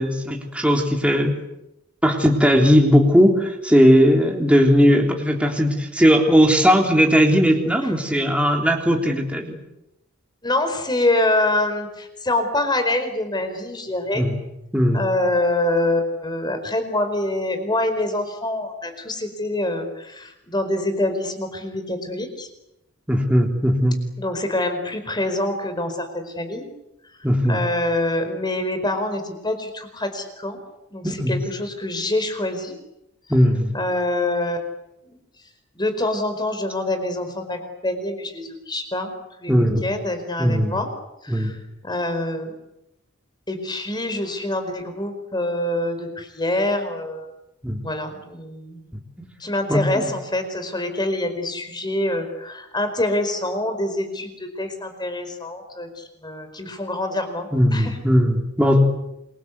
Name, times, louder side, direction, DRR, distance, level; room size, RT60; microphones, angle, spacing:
voice 1, 0.0-1.3 2.0-9.6 14.1-14.4 14.7-15.0 23.1-24.0 27.2-27.6 31.0-31.3 33.3-33.7 39.5-39.8 40.4-40.7 41.3-41.5 47.6-47.9 49.7-50.1 57.5-58.8, equal, 5° right, 1 dB, 3.5 m, -18 dB
voice 2, 10.4-14.2 14.9-22.5 24.2-26.7 27.5-30.6 30.9-32.8 33.7-34.7 35.1-35.2 35.7-40.9 41.2-41.6 41.8-42.5 43.5-47.3 47.8-48.9 49.4-58.0, left 1 dB, 20° left, 8 dB, 4.7 m, -25 dB
27.5 x 24.0 x 8.3 m, 0.89 s
head